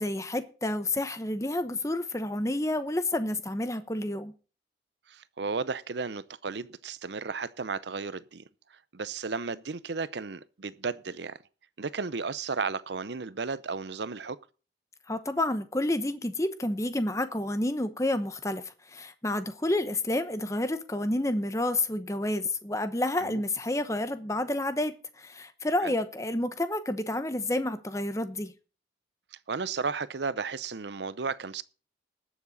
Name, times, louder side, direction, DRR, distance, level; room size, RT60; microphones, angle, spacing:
voice 1, 0.0-4.3 15.1-28.5, left 1 dB, 15° left, 0.9 m, -29 dB
voice 2, 5.1-8.4 8.7-11.4 11.8-14.4 23.2-23.4 25.8-25.9 29.5-31.6, right 4 dB, 70° right, 0.7 m, -34 dB
20.0 x 7.2 x 4.0 m
head